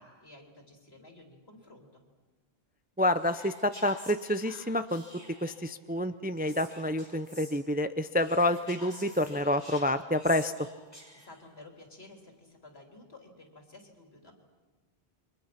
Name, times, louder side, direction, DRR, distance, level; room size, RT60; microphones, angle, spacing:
voice 1, 0.0-2.0 11.1-14.3, left 2 dB, 70° left, 3 dB, 3.6 m, -53 dB
voice 2, 3.0-5.0 5.4-10.5, left 1 dB, 10° right, 10 dB, 0.5 m, -28 dB
Whispering, 3.1-5.7 6.4-7.5 8.2-11.4, equal, 25° left, 6.2 m, -49 dB
29.0 x 24.0 x 5.9 m, 1.4 s
omnidirectional pair, 1.1 m